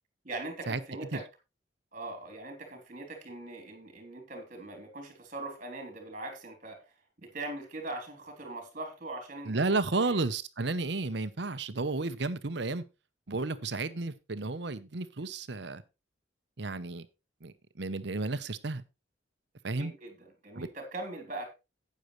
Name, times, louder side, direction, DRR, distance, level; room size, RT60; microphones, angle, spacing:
voice 1, 0.2-1.2 1.9-9.6 9.9-10.2 19.7-21.5, right 2 dB, 40° right, 3.4 m, -41 dB
voice 2, 9.5-12.8 13.3-15.8 16.6-17.1 17.4-18.8 19.6-19.9 20.6-20.7, right 3 dB, 60° right, 0.9 m, -32 dB
12.0 x 9.4 x 3.2 m
head